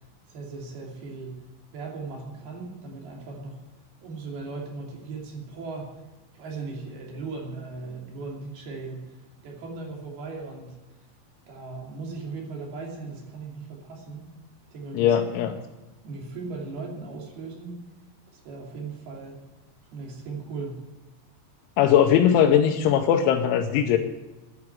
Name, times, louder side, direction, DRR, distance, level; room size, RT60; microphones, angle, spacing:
voice 1, 0.3-1.5 1.7-3.6 4.0-6.0 6.3-10.8 11.5-14.3 14.7-15.2 16.0-17.8 18.3-19.4 19.9-20.9, right 3 dB, 60° right, -1 dB, 4.5 m, -38 dB
voice 2, 14.9-15.5 21.8-24.0, left 9 dB, 90° left, 2 dB, 3.3 m, -20 dB
10.5 x 9.4 x 9.9 m, 1.1 s
omnidirectional pair, 5.3 m